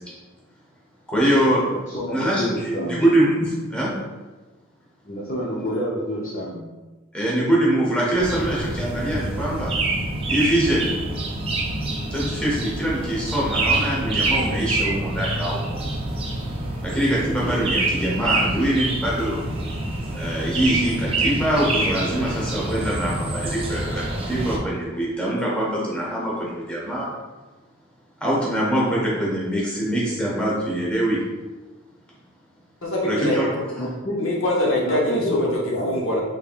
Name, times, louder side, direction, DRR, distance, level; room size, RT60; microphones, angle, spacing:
voice 1, 1.1-1.7 2.1-3.9 5.6-5.7 7.1-9.7 10.3-10.9 12.1-15.8 16.8-19.4 20.1-27.1 28.2-31.2 33.0-33.5, right 1 dB, 5° left, -6 dB, 0.8 m, -23 dB
voice 2, 1.9-3.0 5.0-6.6 33.8-34.3 34.9-35.9, equal, 40° left, -5 dB, 0.5 m, -28 dB
sound 1, 8.2-24.6, right 2 dB, 25° right, 0.4 m, -26 dB
voice 3, 32.8-33.4 34.2-36.2, left 1 dB, 75° left, -2 dB, 0.7 m, -23 dB
3.4 x 3.2 x 2.4 m, 1.2 s
head